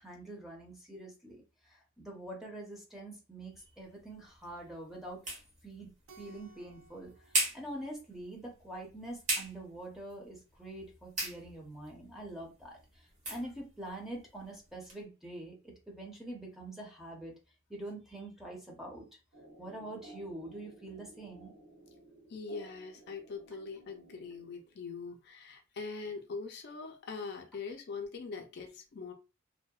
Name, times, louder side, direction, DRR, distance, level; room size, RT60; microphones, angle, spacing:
voice 1, 0.0-5.2 5.6-17.3 17.7-19.0 19.6-21.5, right 1 dB, ahead, -2 dB, 0.6 m, -45 dB
sound 1, 3.5-15.0, right 2 dB, 35° right, 1.0 m, -41 dB
Keyboard (musical), 6.1-8.7, right 3 dB, 85° right, 0.4 m, -60 dB
sound 2, 19.3-24.9, right 2 dB, 65° right, 0.9 m, -56 dB
voice 2, 22.3-29.1, left 4 dB, 50° left, 3 dB, 0.4 m, -42 dB
2.7 x 2.0 x 2.3 m, 0.30 s
head